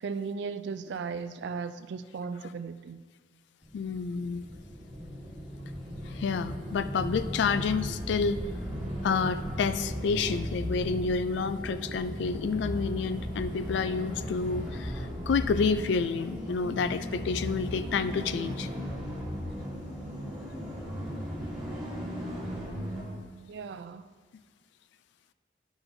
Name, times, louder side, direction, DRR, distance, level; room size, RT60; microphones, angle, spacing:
voice 1, 0.0-3.0 23.5-24.1, right 5 dB, 65° right, 0.3 m, -36 dB
sound 1, 3.6-23.1, equal, 5° right, 1.6 m, -36 dB
voice 2, 3.7-4.5 6.1-8.4 9.0-18.7, left 5 dB, 70° left, 0.3 m, -29 dB
10.5 x 6.0 x 2.6 m
head